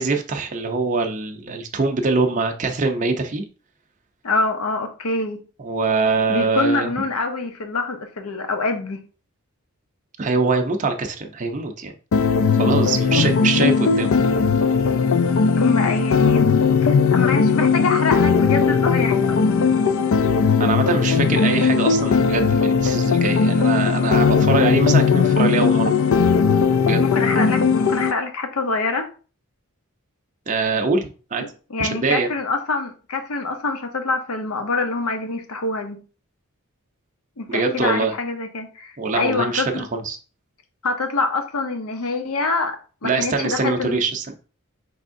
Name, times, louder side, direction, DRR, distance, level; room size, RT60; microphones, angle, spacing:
voice 1, 0.0-3.4 5.6-6.9 10.2-11.9 12.6-14.2 20.6-26.0 26.8-27.0 30.5-31.4 31.8-32.3 37.5-38.1 39.0-40.2 43.0-44.3, right 4 dB, 35° right, 0.5 m, -23 dB
voice 2, 4.2-5.4 6.3-9.0 13.1-13.3 15.6-16.6 17.1-19.4 27.0-29.1 31.4-36.0 37.4-39.8 40.8-44.0, left 3 dB, 85° left, 0.8 m, -25 dB
sound 1, 12.1-28.1, left 5 dB, 65° left, 0.4 m, -18 dB
5.2 x 3.4 x 2.5 m
head